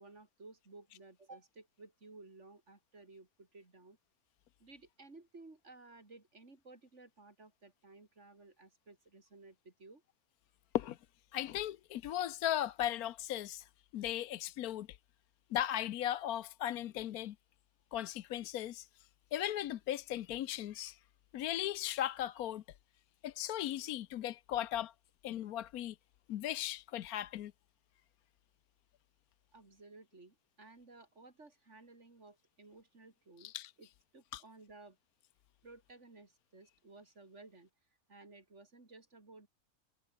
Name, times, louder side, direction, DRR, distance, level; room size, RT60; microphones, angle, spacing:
voice 1, 0.0-4.0 4.6-10.0 29.5-33.5 33.8-33.9 34.1-35.0 35.6-37.7 38.1-39.5, right 3 dB, 50° right, 3.7 m, -56 dB
voice 2, 11.3-15.0 15.5-17.3 17.9-21.0 21.3-22.6 23.2-24.9 25.2-26.0 26.3-27.5 33.4-33.7 34.3-34.4, left 12 dB, 80° left, 1.2 m, -37 dB
omnidirectional pair, 1.6 m